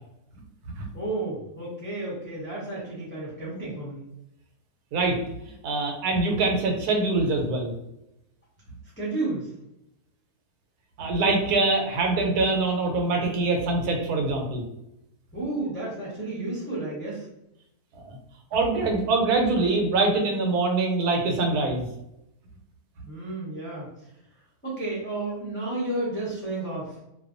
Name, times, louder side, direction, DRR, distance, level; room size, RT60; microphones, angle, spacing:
voice 1, 0.9-4.1 9.0-9.5 15.3-17.3 23.0-23.9 24.6-27.0, right 2 dB, 15° left, -8 dB, 0.4 m, -32 dB
voice 2, 5.6-7.7 11.0-14.6 18.0-18.2 18.5-21.8, right 3 dB, 85° right, 2 dB, 1.1 m, -24 dB
2.5 x 2.3 x 2.5 m, 0.85 s
omnidirectional pair, 1.6 m